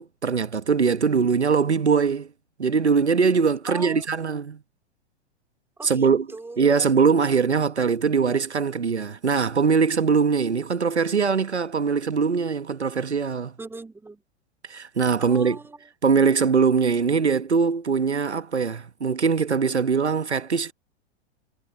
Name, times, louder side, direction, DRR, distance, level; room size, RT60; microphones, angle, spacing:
voice 1, 0.0-2.3 2.6-4.6 5.8-6.3 6.6-13.5 14.7-15.6 16.0-20.7, right 5 dB, 80° right, 1.3 m, -22 dB
voice 2, 3.7-4.0 5.8-6.9 13.6-14.2 15.2-15.9, right 3 dB, 5° right, 2.7 m, -39 dB
figure-of-eight pair, 100°, 33 cm